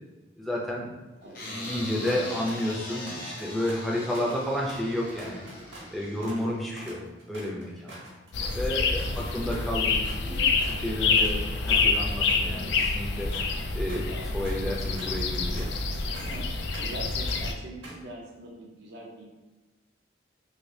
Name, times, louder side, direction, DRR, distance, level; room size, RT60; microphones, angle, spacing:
voice 1, 0.4-0.9 1.5-5.4 5.9-7.0 7.3-7.9 8.5-13.3 13.7-14.0 14.3-15.7, left 1 dB, ahead, -4 dB, 0.5 m, -31 dB
sound 1, 1.3-6.7, left 1 dB, 50° left, 0.8 m, -40 dB
sound 2, 1.6-1.8 2.1-2.8 3.1-10.8 11.1-11.4 11.7-17.0 17.3-18.1, right 1 dB, 80° right, 1.3 m, -46 dB
sound 3, 8.3-17.5, left 4 dB, 65° left, 0.3 m, -27 dB
voice 2, 9.1-9.6 13.8-14.2 16.1-16.5 16.8-19.3, right 1 dB, 65° right, -1 dB, 0.6 m, -43 dB
3.3 x 2.8 x 2.7 m, 1.2 s
head